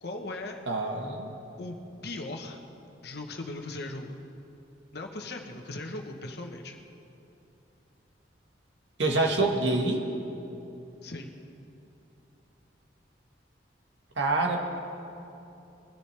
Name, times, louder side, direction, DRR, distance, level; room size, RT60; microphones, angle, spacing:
voice 1, 0.0-0.6 1.6-2.6 3.0-4.2 4.9-6.8 11.0-11.3, left 2 dB, 60° left, 3 dB, 1.2 m, -38 dB
voice 2, 0.7-1.3 9.0-10.0 14.1-14.6, right 2 dB, 85° right, 2 dB, 1.7 m, -26 dB
22.0 x 12.5 x 3.4 m, 2.9 s
head